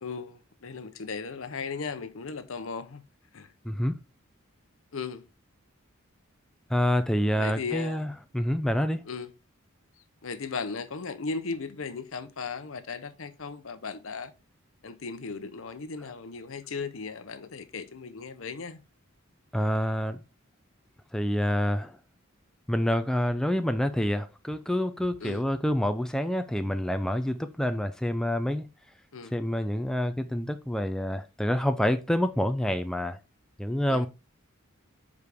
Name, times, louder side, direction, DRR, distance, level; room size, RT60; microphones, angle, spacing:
voice 1, 0.0-3.0 3.3-3.5 4.9-5.2 7.3-8.1 9.1-9.3 10.2-14.3 14.8-18.8 25.2-25.4 29.1-29.3 33.9-34.1, left 4 dB, 70° left, 0.8 m, -36 dB
voice 2, 3.6-4.0 6.7-9.0 19.5-20.2 21.1-22.0 22.7-28.7 29.3-33.2 33.6-34.1, equal, 5° left, 0.4 m, -27 dB
7.0 x 4.8 x 3.4 m
head